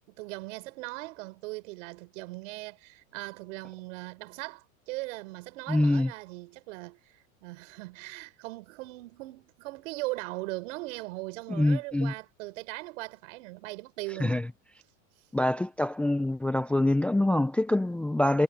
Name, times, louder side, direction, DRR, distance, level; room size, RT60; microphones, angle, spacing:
voice 1, 0.2-14.4, right 23 dB, 65° right, 6.9 m, -39 dB
voice 2, 5.7-6.1 11.5-12.1 14.2-14.5 15.3-18.4, left 1 dB, 5° left, 0.6 m, -25 dB
supercardioid pair, 140°, 41 cm